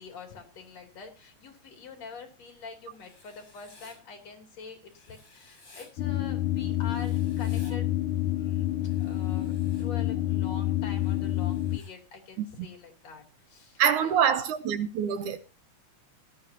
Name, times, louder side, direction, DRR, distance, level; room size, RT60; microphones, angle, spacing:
voice 1, 0.0-7.9 8.3-8.7 9.0-14.5, left 4 dB, 55° left, 4.0 m, -45 dB
Writing, 2.9-4.0 4.9-5.9 6.8-7.7 8.8-9.8 10.9-11.9, left 2 dB, 35° left, 6.9 m, -56 dB
sound 1, 6.0-11.8, left 14 dB, 75° left, 2.0 m, -28 dB
voice 2, 13.8-15.4, right 8 dB, 75° right, 2.2 m, -25 dB
17.5 x 12.0 x 2.9 m
omnidirectional pair, 3.8 m